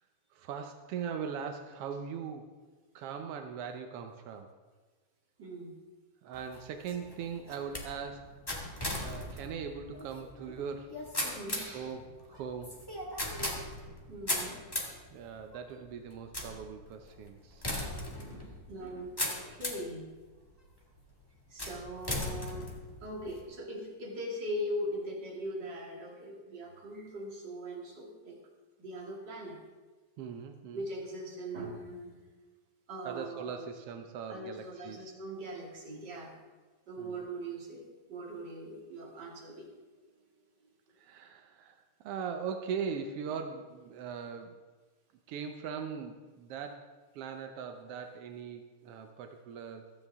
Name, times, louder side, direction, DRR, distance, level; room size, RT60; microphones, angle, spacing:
voice 1, 0.3-2.5 2.9-4.5 6.2-8.3 9.0-10.9 11.2-11.4 11.7-12.8 15.1-17.7 30.2-30.9 33.0-35.1 37.0-37.3 41.0-41.8 42.0-44.6 45.3-46.9 47.1-49.9, right 6 dB, 80° right, 6 dB, 1.3 m, -40 dB
voice 2, 5.4-5.8 11.3-11.9 14.1-14.6 18.1-19.1 19.5-20.1 21.5-22.7 23.0-28.4 28.8-29.6 30.7-32.1 32.9-33.7 34.3-36.4 36.9-39.8, equal, 35° right, -2 dB, 2.8 m, -40 dB
sound 1, 6.3-19.9 20.5-21.0 21.6-23.4, left 1 dB, 15° left, 0.8 m, -38 dB
15.5 x 13.5 x 3.6 m, 1.4 s
omnidirectional pair, 3.6 m